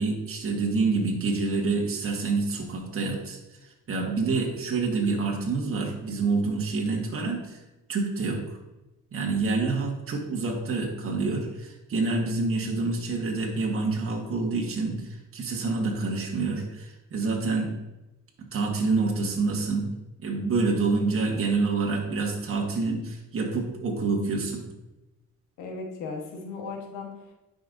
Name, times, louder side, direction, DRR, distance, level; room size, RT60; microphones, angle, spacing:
voice 1, 0.0-7.6 7.9-8.6 9.1-17.7 18.5-19.9 20.2-24.6, right 3 dB, 45° right, 0 dB, 1.5 m, -27 dB
voice 2, 25.6-27.3, left 4 dB, 90° left, 2 dB, 1.3 m, -37 dB
9.9 x 5.2 x 2.6 m, 0.99 s
cardioid pair, 90°, 30 cm